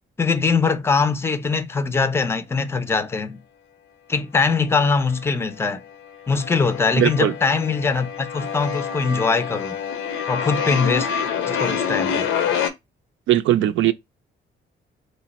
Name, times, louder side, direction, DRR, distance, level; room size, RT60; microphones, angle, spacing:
voice 1, 0.2-3.4 4.1-5.8 6.3-9.8 10.3-11.1 11.5-12.3, left 4 dB, 10° left, 0.5 m, -22 dB
sound 1, 4.5-5.3 5.5-12.7, left 7 dB, 90° left, 0.7 m, -27 dB
voice 2, 7.0-7.3 13.3-13.9, right 13 dB, 75° right, 0.4 m, -19 dB
3.2 x 2.1 x 4.0 m
cardioid pair, 90°, 20 cm